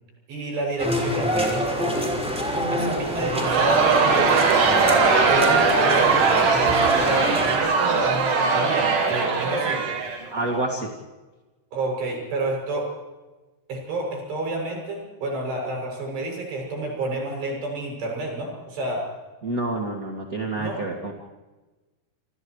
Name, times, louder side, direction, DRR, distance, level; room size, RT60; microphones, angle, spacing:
voice 1, 0.3-2.3 2.7-4.6 5.3-6.5 7.0-9.8 11.7-12.9 13.7-19.1 19.7-19.9 20.5-20.8, right 2 dB, 80° right, 0 dB, 9.5 m, -29 dB
sound 1, 0.8-7.6, equal, ahead, 5.0 m, -27 dB
Crowd, 3.3-10.6, right 4 dB, 60° right, 4.8 m, -20 dB
voice 2, 10.3-10.9 19.4-21.1, right 2 dB, 30° right, 0 dB, 1.7 m, -28 dB
29.0 x 28.0 x 3.3 m, 1.2 s
omnidirectional pair, 4.9 m